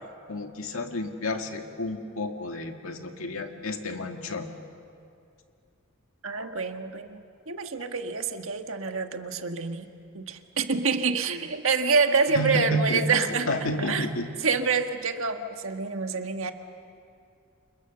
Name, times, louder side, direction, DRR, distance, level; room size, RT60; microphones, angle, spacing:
voice 1, 0.3-4.5 12.3-14.3, left 1 dB, 75° left, 4 dB, 2.1 m, -31 dB
voice 2, 6.2-7.2 7.5-13.5 13.8-14.1 14.4-16.5, right 5 dB, 65° right, 6 dB, 1.6 m, -27 dB
29.5 x 28.0 x 6.9 m, 2.4 s
head